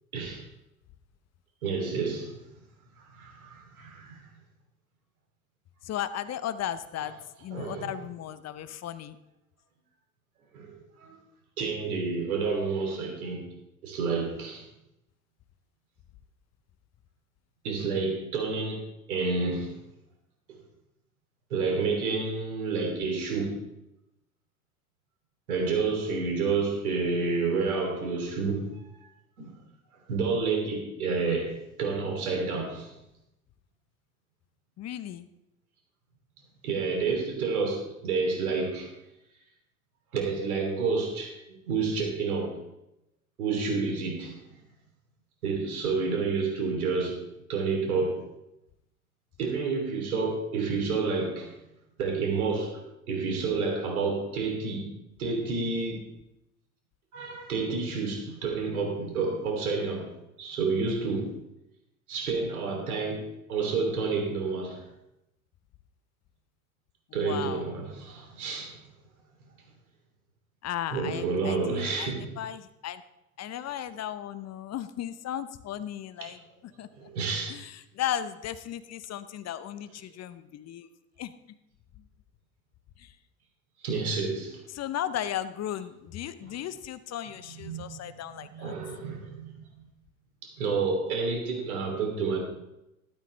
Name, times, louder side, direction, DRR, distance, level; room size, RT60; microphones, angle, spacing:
voice 1, 0.1-0.4 1.6-2.3 3.0-4.2 7.5-7.9 10.5-11.2 11.6-13.5 13.8-14.6 17.6-19.8 21.5-23.6 25.5-28.7 29.4-29.5 30.1-32.9 36.6-38.9 40.1-42.5 43.4-44.4 45.4-47.2 47.5-48.2 49.4-51.5 52.0-54.9 55.2-56.0 57.1-60.1 60.4-61.3 62.1-64.8 67.1-68.8 70.9-72.3 76.2-76.3 77.0-77.6 83.8-84.6 87.6-88.1 88.5-89.6 90.4-92.4, right 4 dB, 80° right, 2 dB, 3.1 m, -29 dB
voice 2, 5.8-7.1 7.4-9.2 34.8-35.3 67.1-67.7 70.6-73.0 73.4-76.4 76.8-77.1 77.5-80.9 81.2-81.3 83.0-83.1 84.7-88.7, left 10 dB, 35° left, 14 dB, 0.8 m, -35 dB
13.0 x 12.5 x 3.3 m, 0.89 s
hypercardioid pair, 70°, 43 cm